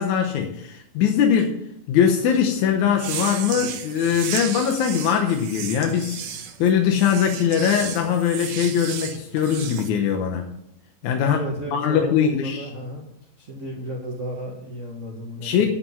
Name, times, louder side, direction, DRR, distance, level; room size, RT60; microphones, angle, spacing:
voice 1, 0.0-1.6 1.9-6.2 6.6-10.5 11.0-11.4 11.7-12.7 15.4-15.7, left 8 dB, 70° left, 3 dB, 2.1 m, -21 dB
sound 1, 2.9-9.9, right 8 dB, 80° right, 2.6 m, -34 dB
voice 2, 11.2-13.0 13.4-15.5, right 1 dB, 55° right, -2 dB, 0.8 m, -33 dB
11.0 x 5.4 x 8.3 m, 0.79 s
omnidirectional pair, 3.9 m